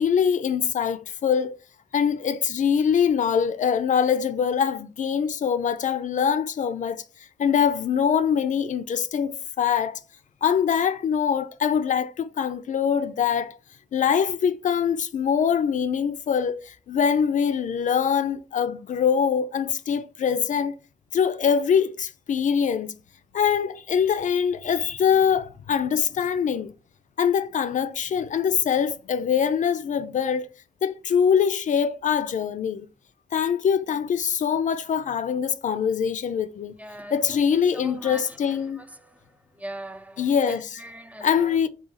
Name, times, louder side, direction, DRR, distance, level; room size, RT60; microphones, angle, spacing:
voice 1, 0.0-1.6 1.9-7.0 7.4-10.0 10.4-13.6 13.9-20.7 21.1-23.0 23.3-26.7 27.2-30.5 30.8-32.9 33.3-36.7 37.1-38.8 40.2-40.8 41.2-41.7, left 7 dB, 75° left, 0.4 m, -23 dB
voice 2, 36.8-41.6, right 1 dB, 10° right, 0.3 m, -41 dB
3.8 x 2.7 x 3.9 m
wide cardioid pair, 135°, 13 cm